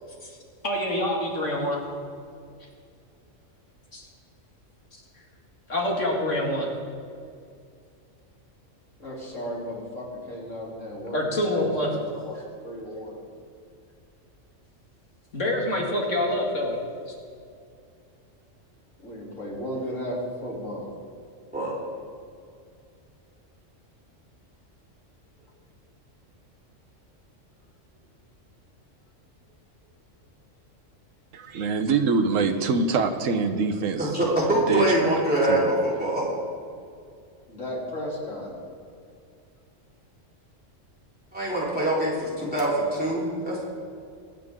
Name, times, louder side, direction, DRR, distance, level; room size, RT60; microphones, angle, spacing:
voice 1, 0.6-1.8 3.9-4.0 5.7-6.7 11.1-11.9 15.3-16.8 17.1-17.2, left 1 dB, 70° left, -1 dB, 2.7 m, -26 dB
voice 2, 9.0-13.2 19.0-20.9 37.5-38.5, equal, 90° left, -4 dB, 3.6 m, -35 dB
voice 3, 31.3-34.4 34.7-35.2 35.5-35.6, right 4 dB, 85° right, 7 dB, 1.3 m, -25 dB
voice 4, 34.0-36.2 41.3-43.7, right 1 dB, 5° right, -7 dB, 4.0 m, -24 dB
24.0 x 9.5 x 3.7 m, 2.3 s
omnidirectional pair, 1.3 m